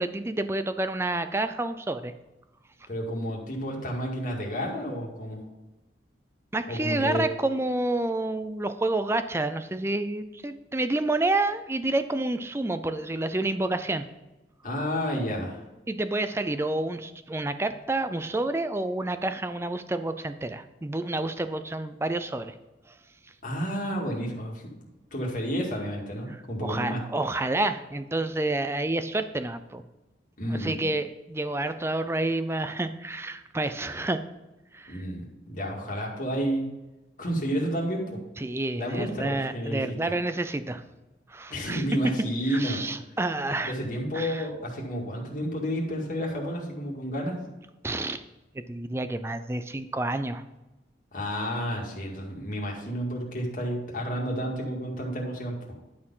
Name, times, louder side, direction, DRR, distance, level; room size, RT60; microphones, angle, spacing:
voice 1, 0.0-2.1 6.5-14.0 15.9-22.5 26.3-29.8 30.5-34.2 34.7-35.0 38.4-40.8 41.3-41.8 42.5-43.7 44.1-44.4 47.8-48.2 48.5-50.4, right 2 dB, 15° right, 10 dB, 0.4 m, -29 dB
voice 2, 2.9-5.4 6.7-7.2 14.6-15.6 23.4-24.7 25.1-27.0 30.4-30.8 34.9-36.7 37.2-38.2 38.8-40.0 41.5-42.8 43.6-47.4 51.1-55.6, equal, 45° left, -2 dB, 2.1 m, -31 dB
11.0 x 4.3 x 5.6 m, 1.1 s
head